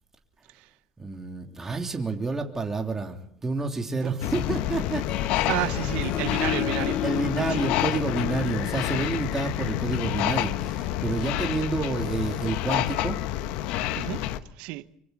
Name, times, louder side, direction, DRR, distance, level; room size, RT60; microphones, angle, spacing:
voice 1, 1.0-5.0 7.0-13.2, right 3 dB, 20° right, 3.2 m, -29 dB
sound 1, 4.2-14.4, left 13 dB, 70° left, 1.2 m, -28 dB
Harp, 4.2-9.7, left 11 dB, 50° left, 0.8 m, -34 dB
voice 2, 5.5-7.0 14.0-14.2 14.6-14.8, right 18 dB, 70° right, 1.0 m, -31 dB
25.0 x 25.0 x 4.1 m
hypercardioid pair, 80°, 2 cm